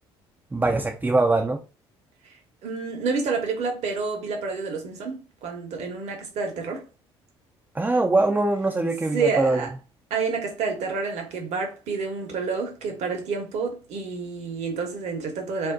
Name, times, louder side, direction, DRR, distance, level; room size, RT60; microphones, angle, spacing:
voice 1, 0.5-1.6 7.7-9.7, right 2 dB, 15° right, 0.5 m, -22 dB
voice 2, 2.6-6.8 9.1-9.7 10.1-15.7, right 4 dB, 60° right, 1.0 m, -29 dB
2.6 x 2.1 x 3.7 m
hypercardioid pair, 55°, 13 cm